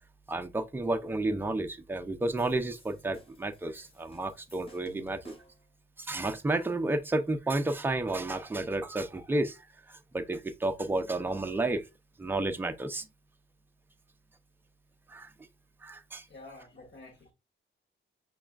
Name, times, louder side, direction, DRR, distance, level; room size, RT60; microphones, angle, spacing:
voice 1, 0.3-5.4 6.0-11.9 12.2-13.1 15.1-15.3 15.8-16.3, right 2 dB, 10° right, 0.4 m, -31 dB
sound 1, 2.4-5.7, equal, 25° left, 0.9 m, -57 dB
voice 2, 16.2-17.3, left 2 dB, 60° left, 1.8 m, -49 dB
6.2 x 3.2 x 2.3 m
wide cardioid pair, 175°, 21 cm